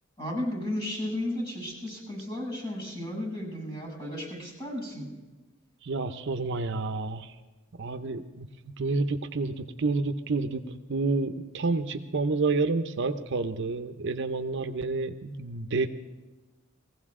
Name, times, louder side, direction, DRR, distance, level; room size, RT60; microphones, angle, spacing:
voice 1, 0.2-5.1, left 1 dB, 25° left, -3 dB, 7.0 m, -34 dB
voice 2, 5.8-7.4 7.8-8.5 8.8-15.9, right 3 dB, 60° right, 8 dB, 0.7 m, -29 dB
20.0 x 15.5 x 3.7 m, 1.2 s
head